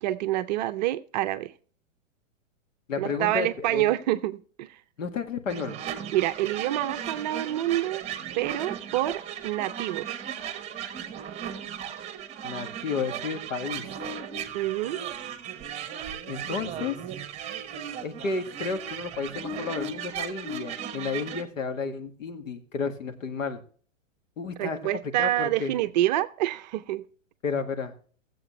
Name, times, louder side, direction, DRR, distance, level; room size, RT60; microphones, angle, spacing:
voice 1, 0.0-1.5 3.0-4.8 6.1-8.0 8.4-10.2 14.5-15.0 24.6-27.0, right 14 dB, 35° right, 0.6 m, -27 dB
voice 2, 2.9-3.9 5.0-5.8 12.4-13.9 16.3-17.0 18.0-23.6 24.4-24.8 25.2-25.7 27.4-28.0, left 5 dB, 75° left, 1.9 m, -32 dB
sound 1, 5.5-21.4, right 8 dB, 15° right, 1.2 m, -36 dB
16.5 x 7.8 x 3.1 m
hypercardioid pair, 130°, 39 cm